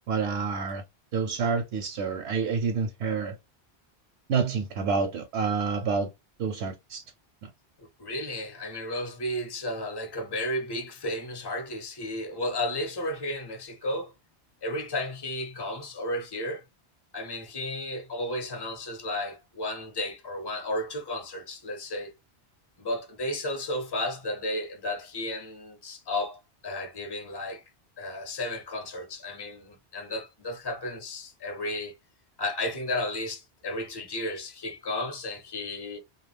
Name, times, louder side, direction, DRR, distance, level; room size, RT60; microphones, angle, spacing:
voice 1, 0.1-0.8 1.1-3.4 4.3-6.1 6.4-7.0 7.4-7.5, right 5 dB, 85° right, 0.9 m, -28 dB
voice 2, 7.8-14.1 14.6-16.6 17.1-22.1 22.8-27.6 28.0-31.9 32.4-36.0, left 1 dB, 25° left, 0.7 m, -33 dB
2.3 x 2.3 x 3.2 m
omnidirectional pair, 1.1 m